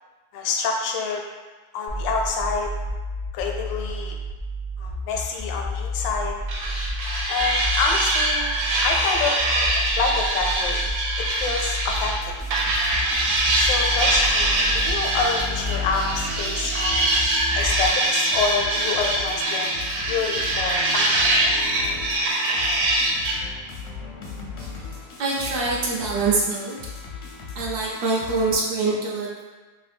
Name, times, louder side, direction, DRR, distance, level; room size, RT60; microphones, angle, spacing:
voice 1, 0.3-1.2 1.7-2.7 3.3-4.2 4.8-6.3 7.0-8.5 8.8-9.4 9.7-10.9 11.3-12.3 13.5-17.2 17.5-19.8 20.0-21.3, left 4 dB, 85° left, 1 dB, 1.3 m, -27 dB
sound 1, 1.9-17.9, left 1 dB, 35° left, 0.3 m, -31 dB
sound 2, 6.5-12.2 12.5-23.4, right 1 dB, 90° right, 1.3 m, -23 dB
sound 3, 11.9-28.6, left 4 dB, 65° left, 0.8 m, -37 dB
voice 2, 25.2-26.7 27.5-29.4, right 3 dB, 70° right, -3 dB, 1.0 m, -24 dB
3.1 x 2.6 x 3.4 m, 1.3 s
omnidirectional pair, 2.0 m